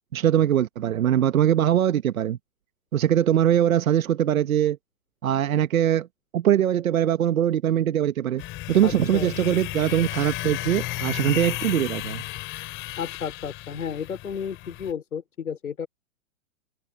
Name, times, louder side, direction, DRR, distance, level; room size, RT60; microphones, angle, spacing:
voice 1, 0.1-2.4 2.9-4.8 5.2-6.1 6.3-8.4 8.7-12.2, right 10 dB, 75° right, 1.2 m, -22 dB
sound 1, 8.4-14.9, left 17 dB, 30° left, 2.8 m, -33 dB
voice 2, 8.8-9.3 13.0-15.9, left 7 dB, 85° left, 4.1 m, -32 dB
hypercardioid pair, 130°, 41 cm